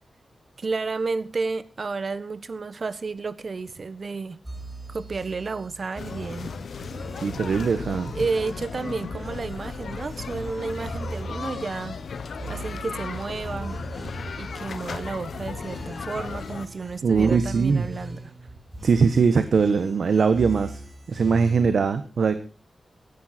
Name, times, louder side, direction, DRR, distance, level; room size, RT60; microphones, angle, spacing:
voice 1, 0.6-4.4 4.9-6.5 8.1-12.0 12.5-13.8 14.4-18.3, right 4 dB, 45° right, 1.2 m, -31 dB
sound 1, 4.4-21.7, right 2 dB, 15° right, 4.3 m, -40 dB
sound 2, 6.0-16.7, left 5 dB, 80° left, 1.3 m, -36 dB
voice 2, 7.2-8.1 17.0-17.9 18.8-20.8 21.1-22.3, right 5 dB, 70° right, 1.3 m, -21 dB
16.5 x 14.0 x 4.4 m
wide cardioid pair, 150°, 0 cm